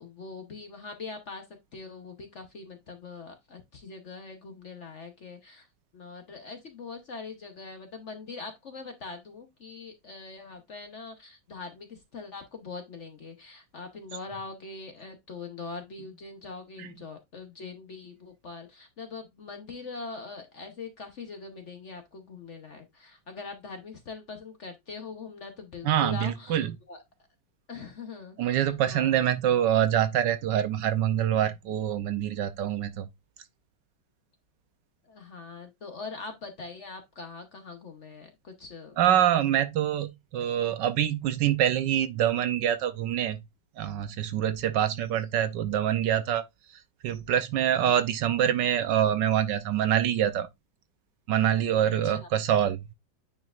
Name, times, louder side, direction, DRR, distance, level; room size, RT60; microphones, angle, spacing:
voice 1, 0.0-5.7 5.9-27.0 27.7-29.2 35.0-39.0 51.8-52.3, left 4 dB, 50° left, 1.0 m, -42 dB
voice 2, 25.8-26.7 28.4-33.1 39.0-43.4 43.8-46.4 47.0-50.5 51.3-52.8, right 10 dB, 75° right, 1.3 m, -25 dB
9.3 x 4.5 x 2.4 m
omnidirectional pair, 2.1 m